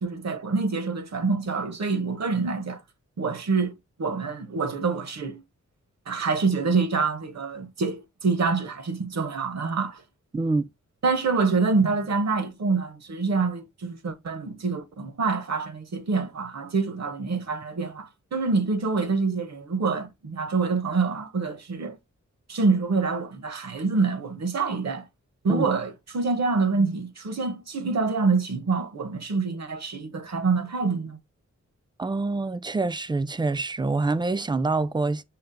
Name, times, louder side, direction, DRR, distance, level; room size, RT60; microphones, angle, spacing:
voice 1, 0.0-2.8 3.2-3.7 4.0-5.4 6.1-10.0 11.0-22.0 22.5-25.0 25.4-31.2, right 4 dB, 60° right, 0.8 m, -26 dB
voice 2, 10.3-10.7 25.5-25.6 32.0-35.2, right 3 dB, 15° right, 0.3 m, -26 dB
5.7 x 2.0 x 3.7 m
cardioid pair, 55°, 30 cm